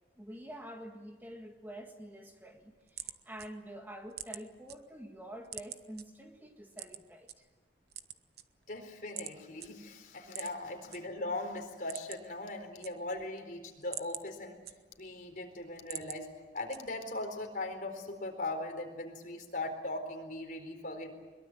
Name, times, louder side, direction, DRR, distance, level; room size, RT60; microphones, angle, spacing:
voice 1, 0.2-7.5 10.4-10.5, right 1 dB, 10° right, 4 dB, 1.7 m, -47 dB
sound 1, 2.5-4.8 5.1-6.0 6.7-7.4 7.8-8.8 9.2-9.3 9.6-9.7 10.3-11.0 11.3-11.4 11.7-12.4 12.6-13.3 13.7-15.2 15.6-16.2 16.7-17.1, right 11 dB, 60° right, 1.1 m, -44 dB
voice 2, 8.7-14.6 15.0-16.3 16.5-21.1, left 2 dB, 50° left, 4 dB, 4.2 m, -39 dB
23.0 x 22.5 x 9.1 m, 1.3 s
head